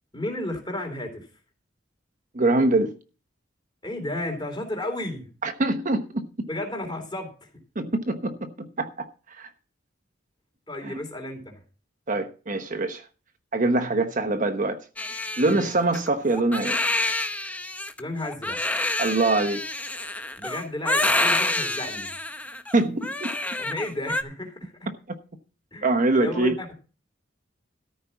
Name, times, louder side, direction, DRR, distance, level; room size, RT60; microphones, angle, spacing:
voice 1, 0.1-1.3 3.8-5.3 6.5-7.3 10.7-11.6 15.4-15.7 18.0-18.6 20.4-22.1 23.5-24.9 25.7-25.9 26.1-26.8, left 1 dB, 25° left, 3.5 m, -33 dB
voice 2, 2.3-2.9 5.4-6.5 7.8-9.1 9.4-9.5 10.8-10.9 12.1-13.0 13.5-14.8 15.4-16.8 19.0-19.6 22.7-23.1 25.8-26.5, right 2 dB, 45° right, 1.0 m, -24 dB
Crying sobbing, 15.0-24.2, left 2 dB, 10° left, 0.8 m, -27 dB
13.5 x 5.4 x 7.1 m
head